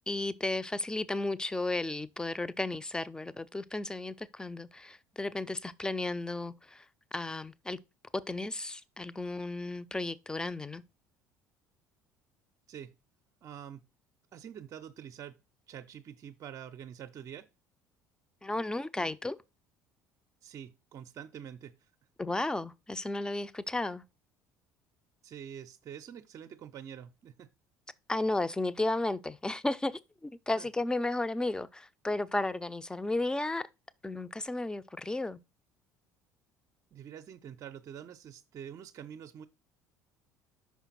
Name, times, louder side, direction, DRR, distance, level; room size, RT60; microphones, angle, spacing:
voice 1, 0.1-6.9 7.1-7.8 8.1-10.8 18.4-19.4 22.2-24.0 28.1-33.7 34.0-35.4, left 2 dB, 10° left, 0.5 m, -34 dB
voice 2, 13.4-13.8 14.3-15.4 15.7-17.5 20.4-21.9 25.2-27.5 30.6-30.7 36.9-39.5, right 9 dB, 40° right, 0.6 m, -46 dB
5.6 x 4.6 x 4.0 m
figure-of-eight pair, 60°, 8 cm